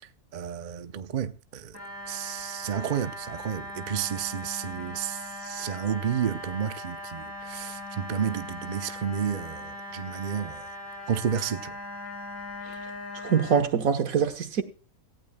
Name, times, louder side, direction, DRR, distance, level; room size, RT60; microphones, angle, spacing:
voice 1, 0.3-1.8 2.1-10.7 11.1-11.7, right 8 dB, 45° right, 0.7 m, -31 dB
sound 1, 1.7-13.6, left 1 dB, 10° left, 8.0 m, -39 dB
voice 2, 13.2-14.6, right 7 dB, 90° right, 1.6 m, -24 dB
17.5 x 15.0 x 2.3 m
omnidirectional pair, 1.4 m